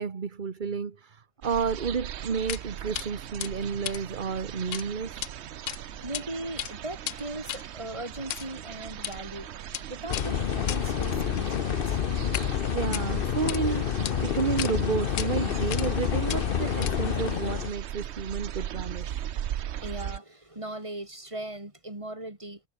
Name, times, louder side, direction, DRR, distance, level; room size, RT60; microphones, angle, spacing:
voice 1, 0.0-5.2 12.7-19.2, right 6 dB, 40° right, 1.3 m, -31 dB
sound 1, 1.4-20.2, right 11 dB, 65° right, 0.9 m, -39 dB
sound 2, 2.5-2.6 2.9-3.1 3.4-4.8 5.1-5.3 5.7-6.2 6.5-12.5 12.8-13.6 14.0-14.1 14.6-14.7 15.2-15.3 15.7-16.0 16.3-17.2, left 12 dB, 90° left, 1.1 m, -36 dB
voice 2, 5.7-9.5 9.9-12.2 19.4-22.6, right 1 dB, 25° right, 3.6 m, -39 dB
sound 3, 10.1-17.7, left 8 dB, 50° left, 0.9 m, -28 dB
omnidirectional pair, 1.3 m